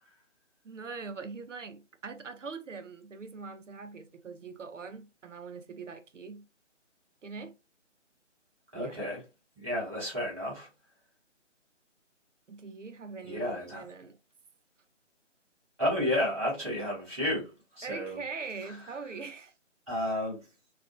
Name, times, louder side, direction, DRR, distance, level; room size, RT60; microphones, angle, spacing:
voice 1, 0.6-6.5 7.2-7.6 8.7-9.0 12.5-14.2 17.8-19.5, right 4 dB, 75° right, 0.6 m, -42 dB
voice 2, 8.7-9.2 9.6-10.7 13.2-13.8 15.8-17.5 17.7-18.2 19.9-20.4, left 1 dB, ahead, 0.8 m, -31 dB
2.5 x 2.3 x 2.6 m
figure-of-eight pair, 155°, 37 cm